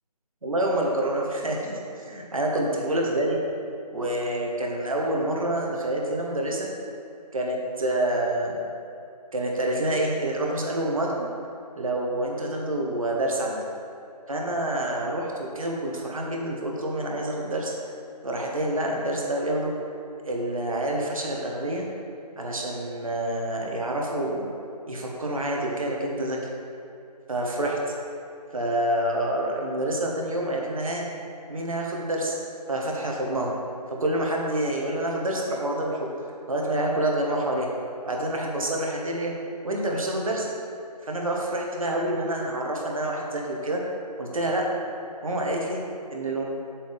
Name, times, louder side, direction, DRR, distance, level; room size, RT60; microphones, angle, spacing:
voice 1, 0.4-3.4 3.9-6.7 7.3-8.6 9.3-11.3 11.8-13.6 14.3-17.7 18.2-19.7 20.3-21.8 22.4-24.5 24.9-26.4 27.3-27.8 28.5-31.0 31.5-32.3 32.7-33.5 33.9-36.1 36.5-37.7 38.1-39.3 39.6-40.5 41.0-43.8 44.2-44.6 45.2-45.8 46.1-46.4, right 1 dB, 55° right, -1 dB, 1.3 m, -27 dB
7.5 x 7.4 x 3.5 m, 2.7 s
figure-of-eight pair, 165°, 21 cm